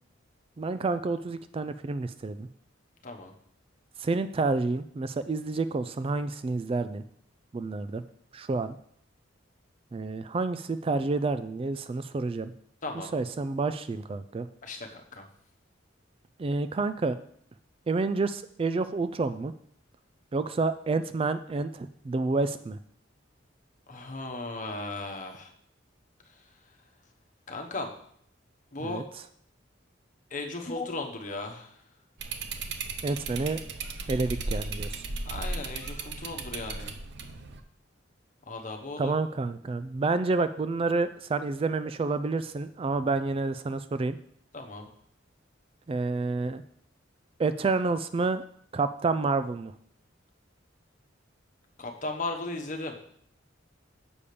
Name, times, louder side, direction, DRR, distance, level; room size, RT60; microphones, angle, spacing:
voice 1, 0.6-2.5 4.0-7.0 7.5-8.0 8.3-8.8 9.9-12.5 13.1-14.5 16.4-17.2 17.9-19.5 20.3-22.8 28.8-29.0 33.0-33.6 34.1-35.0 39.0-44.2 45.9-46.6 47.4-48.4 48.7-49.7, right 3 dB, 30° right, 12 dB, 0.3 m, -29 dB
voice 2, 14.6-15.2 23.9-25.5 26.3-26.5 27.5-27.9 28.7-29.0 30.3-31.8 35.2-37.0 38.5-39.1 44.5-44.9 51.8-52.9, left 2 dB, 45° left, 3 dB, 1.2 m, -36 dB
sound 1, 32.2-37.6, right 3 dB, 60° right, 0.8 m, -36 dB
7.1 x 5.0 x 6.8 m, 0.65 s
head